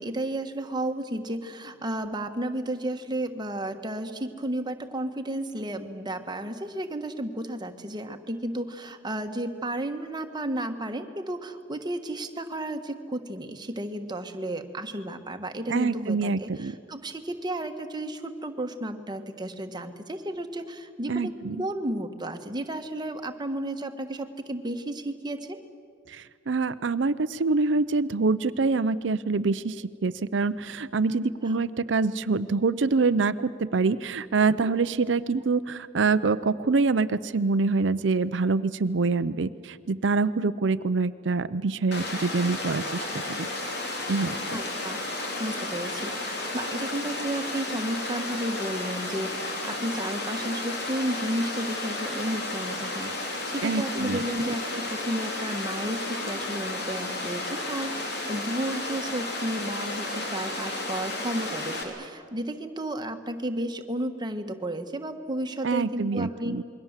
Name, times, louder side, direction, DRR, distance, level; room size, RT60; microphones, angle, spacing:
voice 1, 0.0-21.3 21.6-25.6 31.5-31.6 34.6-34.7 44.5-45.0 45.4-66.5, right 1 dB, 25° right, 6 dB, 1.4 m, -33 dB
voice 2, 15.7-16.7 21.1-21.6 26.1-43.5 44.1-44.3 53.6-54.2 65.6-66.6, right 4 dB, 70° right, 14 dB, 0.6 m, -25 dB
Water, 41.9-61.8, left 2 dB, 60° left, 3.5 m, -33 dB
28.0 x 22.0 x 7.4 m, 2.1 s
head